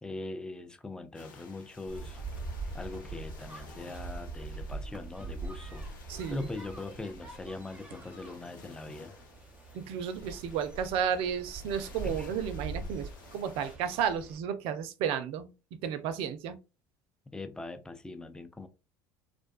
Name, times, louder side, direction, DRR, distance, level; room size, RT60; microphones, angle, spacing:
voice 1, 0.0-2.2 2.7-5.9 6.3-9.1 12.0-12.3 17.3-18.7, left 2 dB, 5° left, 0.4 m, -41 dB
sound 1, 1.1-13.8, left 4 dB, 90° left, 0.5 m, -54 dB
sound 2, 1.9-14.4, right 2 dB, 10° right, 0.9 m, -43 dB
voice 2, 6.1-6.5 9.7-16.6, right 8 dB, 60° right, 0.4 m, -33 dB
2.4 x 2.2 x 2.3 m
hypercardioid pair, 70°, 10 cm